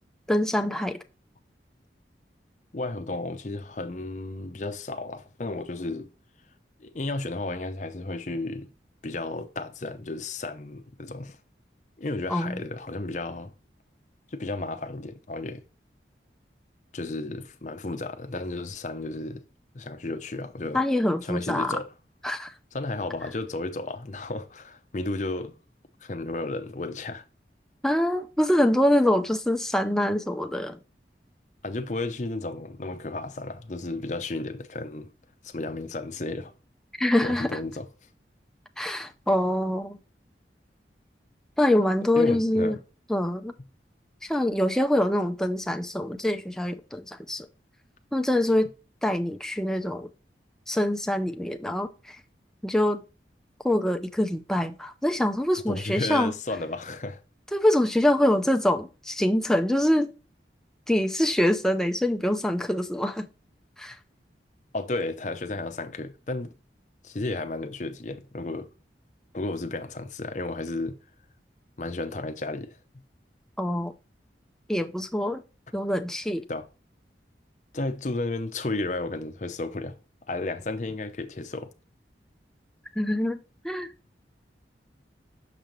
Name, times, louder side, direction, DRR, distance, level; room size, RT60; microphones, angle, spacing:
voice 1, 0.3-1.0 12.3-12.6 20.7-21.8 22.2-22.5 27.8-30.8 37.0-37.6 38.8-40.0 41.6-42.8 43.1-43.5 44.2-47.5 48.1-48.7 49.0-50.1 50.7-52.2 52.6-53.0 53.6-56.3 57.5-60.1 60.9-63.3 63.8-64.0 73.6-73.9 74.7-75.4 75.7-76.4 83.0-83.4 83.6-83.9, left 1 dB, 5° left, 0.5 m, -24 dB
voice 2, 2.7-6.1 6.8-8.7 9.0-11.4 12.0-13.5 14.3-15.6 16.9-19.4 19.7-20.8 21.2-21.9 22.7-25.5 26.0-27.2 31.6-35.1 35.4-36.5 37.2-37.9 42.2-42.8 55.7-57.2 64.7-66.5 67.0-68.7 69.3-71.0 71.8-72.7 76.5-76.7 77.7-80.0 80.3-81.7, left 2 dB, 40° left, 0.6 m, -33 dB
6.7 x 5.2 x 3.1 m
head